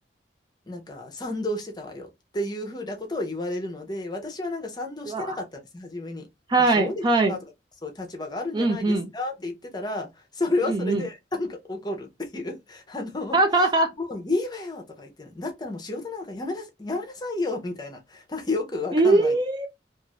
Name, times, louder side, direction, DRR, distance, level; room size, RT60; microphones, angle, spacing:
voice 1, 0.7-6.3 6.7-6.9 7.3-7.4 7.8-10.1 10.3-13.4 14.0-19.3, left 2 dB, 25° left, 0.7 m, -31 dB
voice 2, 5.1-5.4 6.5-7.4 8.5-9.1 10.6-11.0 13.3-13.9 18.9-19.7, right 2 dB, 25° right, 0.4 m, -21 dB
2.5 x 2.4 x 3.0 m
head